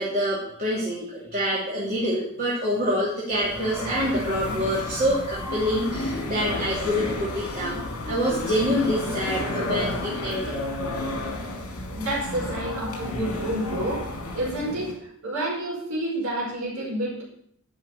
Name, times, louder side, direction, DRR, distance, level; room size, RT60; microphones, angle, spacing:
voice 1, 0.0-10.6, equal, 40° right, -7 dB, 3.0 m, -26 dB
sound 1, 3.3-14.9, left 2 dB, 70° left, 3.9 m, -32 dB
voice 2, 11.9-14.0 14.3-14.9 15.2-17.2, right 1 dB, 75° right, -5 dB, 5.1 m, -29 dB
12.0 x 6.1 x 7.2 m, 0.68 s
head